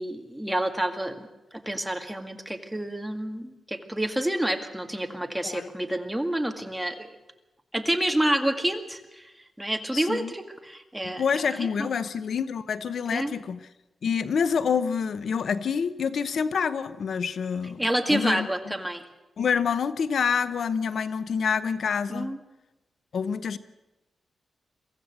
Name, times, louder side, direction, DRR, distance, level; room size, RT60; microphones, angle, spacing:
voice 1, 0.0-7.1 7.7-9.3 9.6-11.5 11.8-11.9 13.1-13.3 17.8-19.1 22.1-22.4, right 1 dB, 5° right, 5 dB, 2.0 m, -28 dB
voice 2, 9.9-10.3 11.0-13.6 14.0-17.8 18.1-18.7 19.4-22.3 23.1-23.6, left 6 dB, 75° left, 14 dB, 0.8 m, -27 dB
23.5 x 15.0 x 8.0 m, 1.0 s
wide cardioid pair, 100°, 0 cm